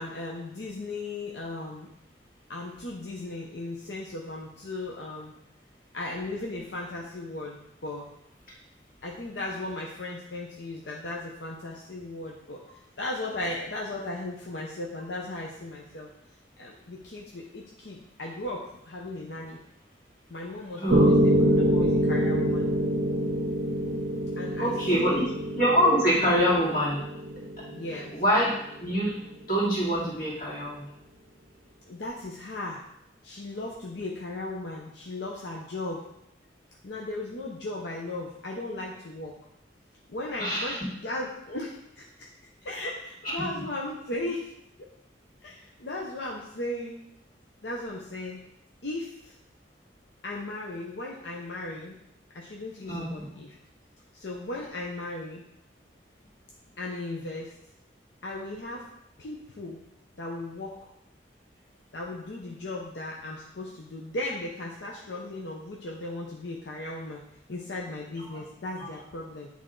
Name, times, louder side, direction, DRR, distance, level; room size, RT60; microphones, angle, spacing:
voice 1, 0.0-1.9 2.5-5.3 5.9-8.0 9.0-12.6 13.0-16.1 16.6-19.6 20.3-22.7 24.4-25.3 27.7-28.1 31.9-32.8 33.2-36.0 36.8-39.3 40.1-42.3 42.6-44.5 45.4-46.9 47.6-48.4 48.8-49.3 50.2-51.9 52.3-53.5 54.1-55.4 56.8-57.5 58.2-58.8 59.2-59.8 60.2-60.7 61.9-67.2 67.5-69.5, left 2 dB, 75° left, -2 dB, 0.8 m, -36 dB
voice 2, 20.8-21.1 24.6-25.2 25.5-27.0 28.1-28.5 28.8-29.1 29.5-30.9 40.4-40.8 43.2-43.5 52.9-53.2 68.3-68.4 68.8-68.9, equal, 50° left, -7 dB, 2.5 m, -25 dB
Piano, 20.9-29.0, equal, 50° right, 0.6 m, -26 dB
8.7 x 3.6 x 3.8 m, 0.79 s
head